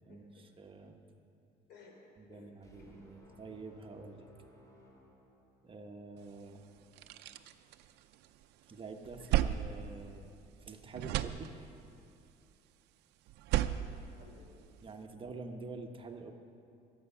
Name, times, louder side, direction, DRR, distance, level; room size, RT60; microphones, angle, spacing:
voice 1, 0.0-0.5 0.8-1.1 1.7-1.9 2.3-2.5 2.8-2.9 13.6-15.0, left 4 dB, 75° left, 1 dB, 3.3 m, -59 dB
voice 2, 0.6-1.0 2.2-4.3 5.6-6.6 8.7-10.3 10.6-11.5 14.8-16.3, right 3 dB, 30° right, 4 dB, 1.1 m, -47 dB
sound 1, 2.6-6.1, left 1 dB, 20° left, 2.5 m, -60 dB
sound 2, 6.3-6.4 6.8-8.4 8.8-10.7 10.9-12.0 13.3-14.9, right 12 dB, 85° right, 0.6 m, -35 dB
22.0 x 8.2 x 5.6 m, 2.6 s
cardioid pair, 110°, 17 cm